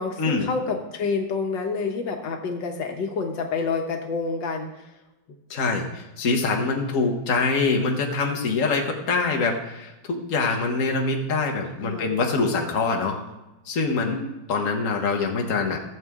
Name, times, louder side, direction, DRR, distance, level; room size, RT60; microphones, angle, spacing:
voice 1, 0.0-4.7 11.8-12.1 13.0-13.2 14.0-14.3, left 4 dB, 85° left, 3 dB, 1.8 m, -28 dB
voice 2, 5.5-13.2 13.7-14.2 14.5-15.8, left 4 dB, 45° left, 2 dB, 1.6 m, -24 dB
15.5 x 7.5 x 3.6 m, 1.0 s
omnidirectional pair, 2.0 m